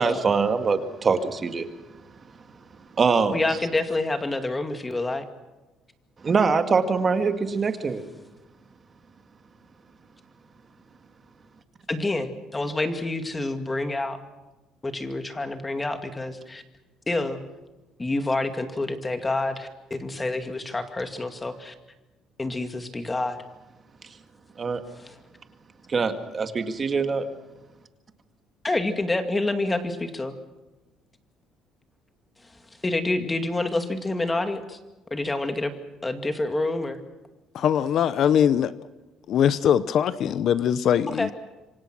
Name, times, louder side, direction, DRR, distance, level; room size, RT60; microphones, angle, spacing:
voice 1, 0.0-1.7 3.0-3.4 6.2-8.0 24.6-24.8 25.9-27.3, right 5 dB, 30° right, 7 dB, 2.0 m, -23 dB
voice 2, 3.3-5.3 11.9-14.2 14.8-16.6 17.1-17.4 18.0-21.7 22.4-23.4 25.0-25.1 28.6-30.3 32.8-34.8 35.1-35.7 36.0-37.0 41.1-41.3, left 2 dB, 15° left, 7 dB, 2.3 m, -27 dB
voice 3, 37.5-38.7 39.3-41.3, left 9 dB, 55° left, 15 dB, 0.8 m, -21 dB
27.0 x 24.5 x 6.2 m, 1.1 s
cardioid pair, 140°, 0 cm